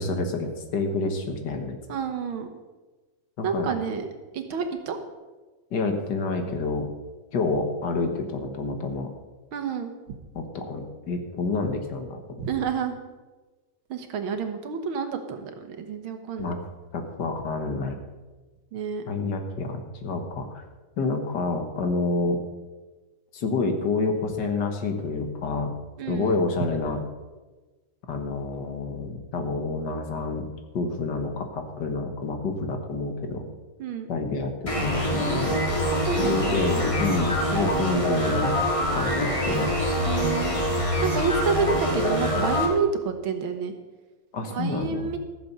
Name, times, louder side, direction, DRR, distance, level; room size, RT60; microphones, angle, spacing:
voice 1, 0.0-1.8 3.4-3.7 5.7-6.9 7.3-9.1 10.4-12.2 16.4-16.6 16.9-18.0 19.1-20.6 21.0-22.4 23.3-25.7 26.1-27.0 28.1-30.5 30.7-33.5 34.1-35.6 36.2-38.5 38.9-39.7 44.3-45.1, left 3 dB, 60° left, 5 dB, 1.9 m, -28 dB
voice 2, 1.9-2.5 3.4-4.0 4.3-5.0 9.5-9.9 12.4-13.0 13.9-16.5 18.7-19.0 26.0-26.4 33.8-34.1 35.9-36.5 40.1-40.6 41.0-43.7 44.5-45.2, right 6 dB, 80° right, 7 dB, 2.1 m, -29 dB
sound 1, 34.7-42.7, equal, 15° left, 2.2 m, -25 dB
14.5 x 7.1 x 6.7 m, 1.2 s
omnidirectional pair, 2.2 m